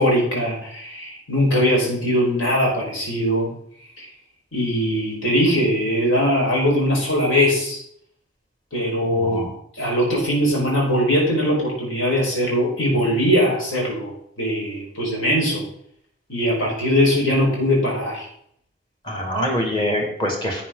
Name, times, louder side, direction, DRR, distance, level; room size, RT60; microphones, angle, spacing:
voice 1, 0.0-3.5 4.0-4.1 4.5-7.8 8.7-9.4 9.8-15.6 16.3-18.3, equal, 75° left, -2 dB, 5.1 m, -21 dB
voice 2, 9.2-9.5 19.1-20.6, equal, 25° left, 1 dB, 2.3 m, -24 dB
11.0 x 8.6 x 4.0 m, 0.67 s
head